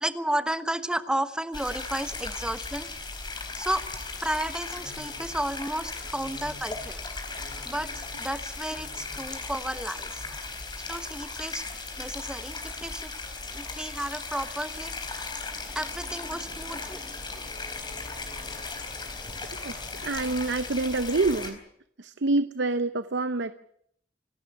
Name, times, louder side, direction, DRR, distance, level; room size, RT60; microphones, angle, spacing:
voice 1, 0.0-2.9 3.5-3.8 4.2-7.0 7.6-10.2 10.8-11.6 12.0-13.1 13.5-15.3 15.7-17.0, right 1 dB, 5° right, 11 dB, 1.1 m, -32 dB
sound 1, 1.5-21.5, left 3 dB, 25° left, 4.1 m, -37 dB
sound 2, 4.0-9.7 10.0-10.3, left 2 dB, 60° left, 5.1 m, -52 dB
voice 2, 19.6-21.6 22.0-23.5, right 3 dB, 85° right, 13 dB, 0.8 m, -27 dB
26.0 x 13.0 x 10.0 m, 0.72 s
head